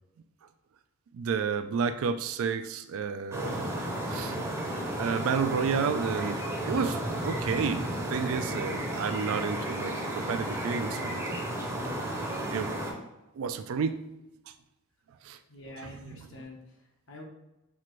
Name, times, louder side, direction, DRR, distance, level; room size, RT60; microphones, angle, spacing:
voice 1, 1.1-3.7 4.1-4.4 5.0-11.4 12.5-12.8 13.4-14.1 14.5-14.6 15.2-15.4 15.8-16.3, right 6 dB, 70° right, 10 dB, 0.3 m, -31 dB
sound 1, 3.3-12.9, right 1 dB, 10° right, 0.6 m, -33 dB
voice 2, 15.5-17.2, left 1 dB, 55° left, 0 dB, 0.9 m, -46 dB
5.7 x 2.5 x 3.1 m, 0.93 s
head